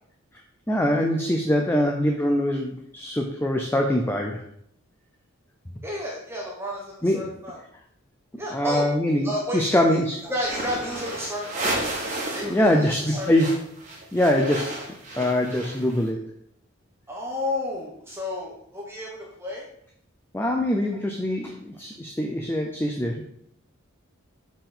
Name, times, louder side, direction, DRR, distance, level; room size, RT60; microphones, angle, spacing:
voice 1, 0.7-4.4 7.0-7.2 8.5-10.3 12.4-13.6 14.1-14.8 15.2-16.3 20.3-23.3, left 1 dB, 10° left, 1 dB, 0.5 m, -23 dB
voice 2, 5.8-7.6 8.4-8.9 9.2-11.8 12.3-13.3 17.1-19.7, left 1 dB, 10° right, -3 dB, 1.1 m, -32 dB
sound 1, 10.4-12.6 12.8-16.0, right 2 dB, 35° right, 1.5 m, -32 dB
7.1 x 4.5 x 3.9 m, 0.69 s
head